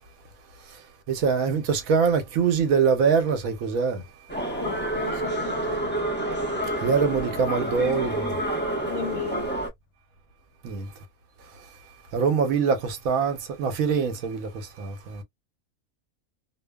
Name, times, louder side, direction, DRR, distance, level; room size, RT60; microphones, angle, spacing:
voice 1, 1.1-4.0 6.8-8.4 10.6-10.9 12.1-15.2, right 6 dB, 80° right, 1.2 m, -24 dB
sound 1, 4.3-9.7, right 1 dB, 10° left, 0.6 m, -28 dB
voice 2, 4.5-5.8 8.8-9.5, left 7 dB, 65° left, 1.0 m, -35 dB
2.8 x 2.2 x 2.2 m
omnidirectional pair, 1.5 m